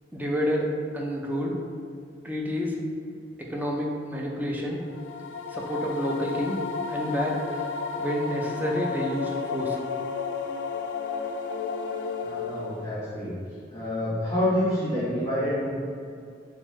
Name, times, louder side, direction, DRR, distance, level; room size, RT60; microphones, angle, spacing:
voice 1, 0.1-0.7 0.9-1.6 2.2-2.8 3.4-4.8 5.5-6.6 6.9-7.6 8.0-9.8, equal, 10° right, -1 dB, 0.4 m, -29 dB
sound 1, 4.9-13.0, left 5 dB, 80° left, 0.3 m, -32 dB
voice 2, 12.2-13.3 13.7-15.7, left 1 dB, 25° left, -13 dB, 1.4 m, -27 dB
3.5 x 3.5 x 3.1 m, 2.3 s
head